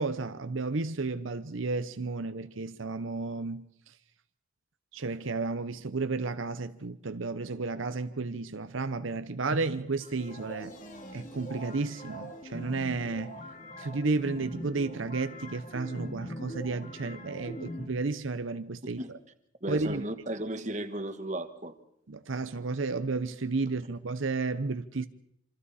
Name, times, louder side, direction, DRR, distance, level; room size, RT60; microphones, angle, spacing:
voice 1, 0.0-3.9 4.9-10.7 11.1-13.3 13.8-19.0 19.7-20.0 22.1-25.1, right 3 dB, 80° right, 0.8 m, -32 dB
sound 1, 10.0-17.9, equal, 40° left, 2.8 m, -42 dB
voice 2, 19.6-21.7, right 1 dB, 35° right, 1.4 m, -35 dB
27.0 x 25.5 x 4.2 m
head